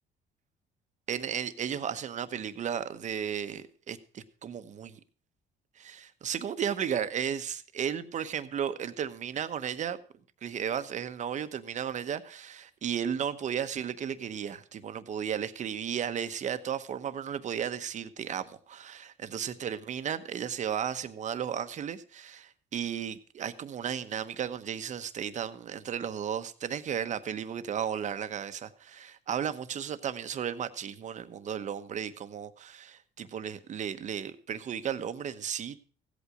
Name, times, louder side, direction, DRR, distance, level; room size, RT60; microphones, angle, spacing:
voice 1, 1.1-5.0 5.8-10.0 10.4-35.8, right 8 dB, 45° right, 1.0 m, -34 dB
15.5 x 8.4 x 4.9 m
cardioid pair, 110°, 17 cm